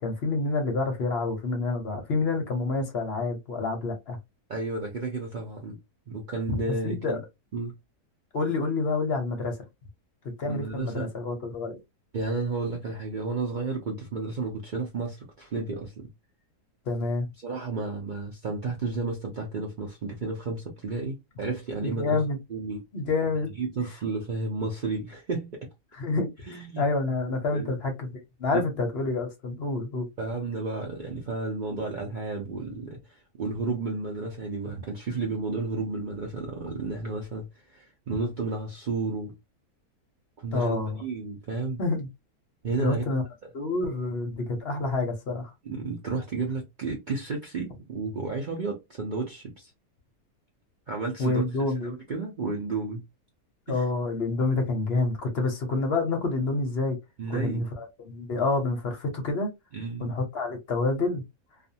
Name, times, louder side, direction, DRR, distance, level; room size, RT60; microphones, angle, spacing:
voice 1, 0.0-4.2 6.5-7.2 8.3-9.5 10.4-11.8 16.9-17.3 21.8-22.4 22.9-23.5 26.0-26.3 26.8-28.1 28.4-30.1 40.5-41.0 41.8-42.1 42.8-43.2 43.5-45.5 51.2-52.0 53.7-57.0 57.3-59.5 60.0-61.2, left 3 dB, 50° left, 0.9 m, -28 dB
voice 2, 4.5-5.8 6.1-7.2 7.5-7.7 10.4-11.1 12.1-16.1 17.4-22.2 22.5-22.8 23.3-25.6 26.5-26.8 27.5-27.7 28.5-28.6 30.2-39.4 40.4-41.8 42.6-43.2 45.6-49.7 50.9-51.4 51.8-53.0 53.7-53.8 57.2-57.7 59.7-60.1, right 3 dB, 85° right, 0.4 m, -32 dB
2.5 x 2.4 x 2.7 m
omnidirectional pair, 1.7 m